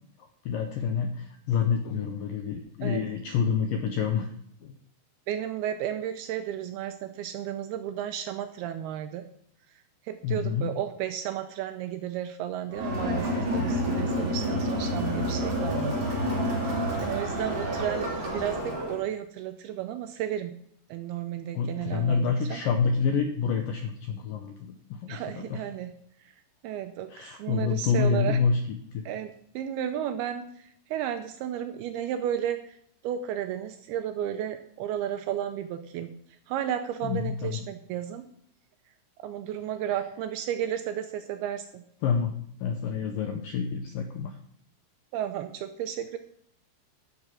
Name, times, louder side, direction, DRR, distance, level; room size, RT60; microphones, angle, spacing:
voice 1, 0.5-4.3 4.6-4.7 10.2-10.8 21.6-25.6 27.1-28.6 28.9-29.0 37.0-37.6 42.0-42.4 42.6-44.3, left 6 dB, 80° left, 6 dB, 1.9 m, -28 dB
voice 2, 5.3-9.2 10.0-16.1 16.4-16.7 17.0-20.5 20.9-22.6 25.1-25.9 26.3-26.4 26.6-28.4 29.1-32.8 33.0-36.1 36.5-38.3 39.2-41.8 45.1-46.2, right 10 dB, 80° right, 8 dB, 2.3 m, -33 dB
Crowd, 12.7-19.0, equal, 30° right, 3.0 m, -29 dB
12.0 x 6.6 x 6.1 m, 0.68 s
omnidirectional pair, 5.0 m